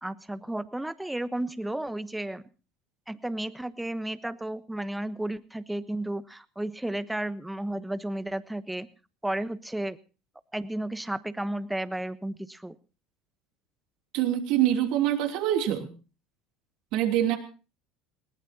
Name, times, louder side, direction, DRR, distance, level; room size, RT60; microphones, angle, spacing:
voice 1, 0.0-2.4 3.1-8.9 9.2-10.0 10.5-12.8, right 1 dB, 5° right, 14 dB, 1.1 m, -33 dB
voice 2, 14.1-15.9 16.9-17.4, right 11 dB, 65° right, 4 dB, 3.1 m, -25 dB
20.5 x 18.5 x 2.8 m, 0.34 s
hypercardioid pair, 80°, 0 cm